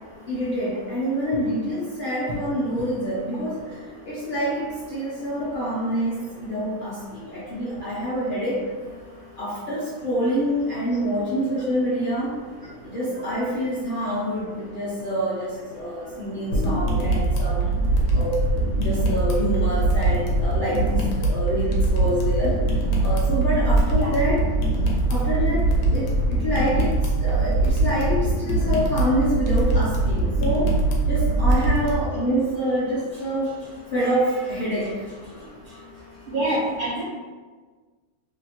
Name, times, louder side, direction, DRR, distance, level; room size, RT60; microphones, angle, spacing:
voice 1, 0.3-3.7 4.0-8.6 9.4-12.4 12.8-17.8 18.1-18.4 18.7-22.8 23.0-24.5 25.1-30.7 31.1-35.8 36.5-36.6, equal, 55° left, -8 dB, 0.6 m, -26 dB
sound 1, 16.5-31.9, right 2 dB, 85° left, 1.1 m, -22 dB
voice 2, 36.3-37.0, right 1 dB, 60° right, -8 dB, 0.6 m, -25 dB
2.8 x 2.4 x 2.8 m, 1.4 s
omnidirectional pair, 1.5 m